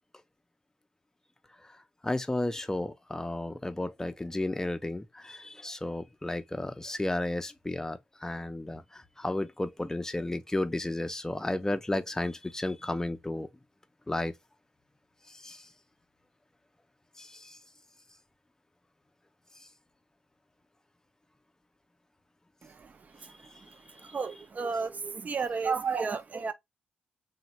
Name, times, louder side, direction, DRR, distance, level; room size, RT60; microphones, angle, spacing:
voice 1, 2.0-13.5 14.1-14.3 15.4-15.6 17.2-17.6 24.0-24.1, left 1 dB, 15° left, 0.5 m, -33 dB
voice 2, 22.6-26.5, right 5 dB, 45° right, 0.5 m, -33 dB
3.0 x 2.2 x 2.8 m
supercardioid pair, 50°, 4 cm